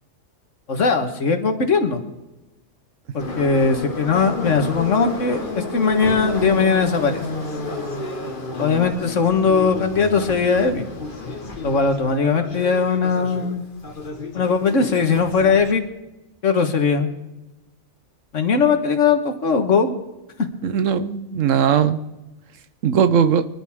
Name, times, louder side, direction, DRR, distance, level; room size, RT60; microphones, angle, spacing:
voice 1, 0.7-2.0 3.1-7.2 8.6-10.9 11.6-13.7 14.3-15.8 16.4-17.1 18.3-19.9, left 5 dB, 70° left, 7 dB, 1.8 m, -19 dB
Subway metro underground, 3.2-15.7, left 3 dB, 40° left, 1.7 m, -31 dB
voice 2, 20.6-22.0 22.8-23.5, right 7 dB, 75° right, 12 dB, 1.2 m, -18 dB
25.5 x 11.0 x 3.6 m, 1.0 s
omnidirectional pair, 1.3 m